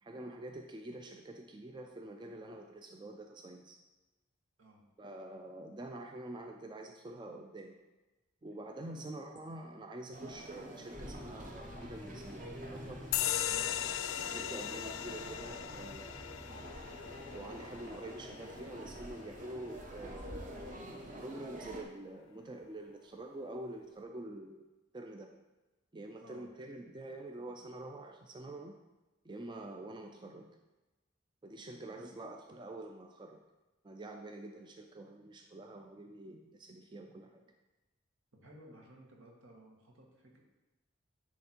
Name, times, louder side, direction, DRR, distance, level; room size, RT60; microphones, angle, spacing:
voice 1, 0.0-3.8 5.0-7.8 8.4-13.1 14.3-16.3 17.3-20.5 21.2-24.6 24.9-25.4 25.9-28.8 29.2-30.5 31.4-33.4 33.8-37.4, right 1 dB, 25° right, 3 dB, 0.4 m, -46 dB
sound 1, 10.1-21.8, right 1 dB, 40° right, 0.9 m, -48 dB
sound 2, 10.9-20.9, left 1 dB, 5° left, 0.7 m, -52 dB
sound 3, 13.1-20.2, left 11 dB, 80° left, 0.3 m, -38 dB
voice 2, 13.5-13.8 14.2-14.5 16.5-16.7 26.2-26.5 31.9-32.2 38.3-40.4, right 1 dB, 80° right, -1 dB, 1.5 m, -56 dB
10.0 x 3.4 x 4.4 m, 1.1 s
head